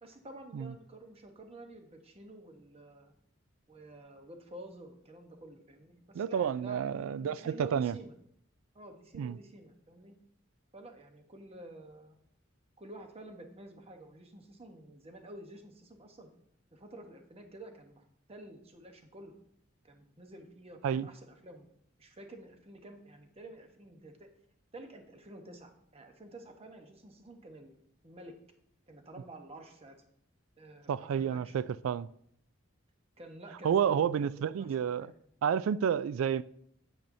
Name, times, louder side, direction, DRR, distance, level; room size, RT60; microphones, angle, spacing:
voice 1, 0.0-3.1 3.7-8.2 8.7-10.1 10.7-12.2 12.8-16.3 16.7-19.3 19.8-21.7 22.0-24.3 24.7-27.8 28.0-28.3 28.9-30.0 30.6-31.5 33.2-35.1, right 1 dB, 30° right, 1.0 m, -50 dB
voice 2, 6.1-8.0 9.2-9.4 20.8-21.1 30.9-32.1 33.6-35.1 35.4-36.4, right 8 dB, 80° right, 0.3 m, -30 dB
8.9 x 8.6 x 2.7 m
head